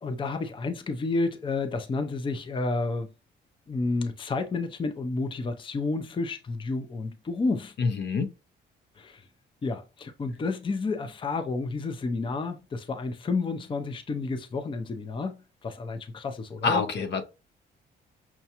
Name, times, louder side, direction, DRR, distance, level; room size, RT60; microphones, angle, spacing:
voice 1, 0.0-3.1 3.7-7.7 9.0-9.2 9.6-16.8, left 3 dB, 25° left, 0.5 m, -30 dB
voice 2, 7.8-8.3 16.6-17.3, left 4 dB, 60° left, 0.7 m, -26 dB
5.8 x 2.2 x 2.8 m
cardioid pair, 90°, 20 cm